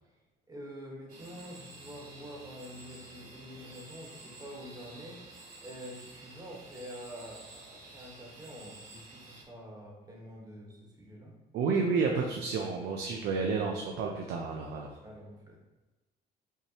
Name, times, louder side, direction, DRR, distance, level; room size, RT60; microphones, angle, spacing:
voice 1, 0.5-11.3 15.0-15.6, equal, 20° right, -2 dB, 1.3 m, -47 dB
sound 1, 1.1-9.4, right 2 dB, 55° right, 1.3 m, -51 dB
voice 2, 11.5-15.0, right 4 dB, 75° right, 1 dB, 0.6 m, -30 dB
5.6 x 3.2 x 2.9 m, 1.1 s
cardioid pair, 110°, 17 cm